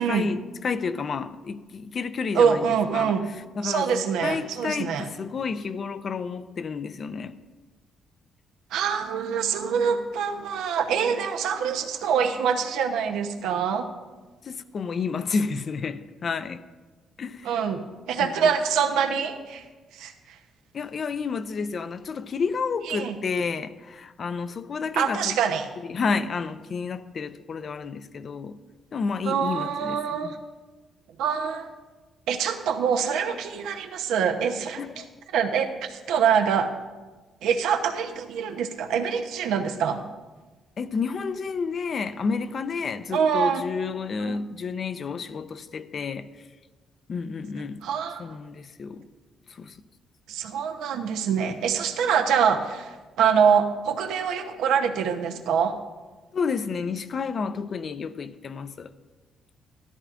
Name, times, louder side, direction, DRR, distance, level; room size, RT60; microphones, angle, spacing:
voice 1, 0.0-7.4 14.4-16.6 17.2-17.5 18.2-18.5 20.7-25.4 25.8-28.6 28.9-30.4 34.8-35.1 40.8-46.5 47.1-47.9 48.2-49.1 49.5-49.8 56.3-58.9, left 5 dB, 50° left, 0.5 m, -30 dB
voice 2, 2.3-3.2 3.6-5.1 8.7-13.9 17.4-17.8 18.1-19.6 19.9-20.1 22.8-23.1 24.9-25.7 29.2-30.4 31.2-31.7 32.3-34.8 35.3-36.7 37.4-40.0 43.1-43.6 44.2-44.4 47.8-48.3 50.3-55.7, right 7 dB, 90° right, 0.8 m, -25 dB
13.5 x 12.5 x 2.5 m
cardioid pair, 90°, 0 cm